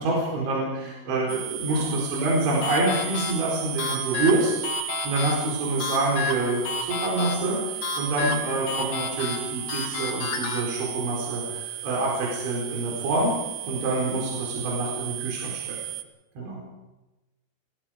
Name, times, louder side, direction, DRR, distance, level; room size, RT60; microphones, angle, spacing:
voice 1, 0.0-4.5 5.1-13.3 13.7-15.8 16.4-16.6, right 2 dB, 90° right, -3 dB, 7.0 m, -26 dB
voice 2, 0.6-2.0 13.9-14.2 16.4-16.7, left 2 dB, 60° left, -6 dB, 9.0 m, -44 dB
sound 1, 1.3-16.0, right 14 dB, 70° right, 2.3 m, -35 dB
sound 2, 2.6-10.6, left 4 dB, 80° left, 4.3 m, -32 dB
29.5 x 19.0 x 5.1 m, 1.0 s
omnidirectional pair, 5.2 m